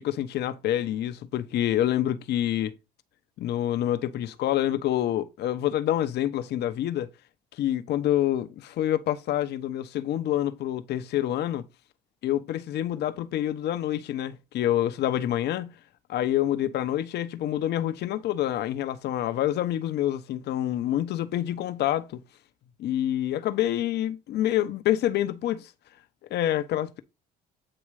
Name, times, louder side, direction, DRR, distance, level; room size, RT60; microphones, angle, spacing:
voice 1, 0.0-2.7 3.4-7.1 7.6-11.6 12.2-15.7 16.1-22.2 22.8-25.7 26.3-27.0, left 12 dB, 60° left, 0.8 m, -27 dB
8.7 x 3.0 x 4.8 m
supercardioid pair, 75°, 19 cm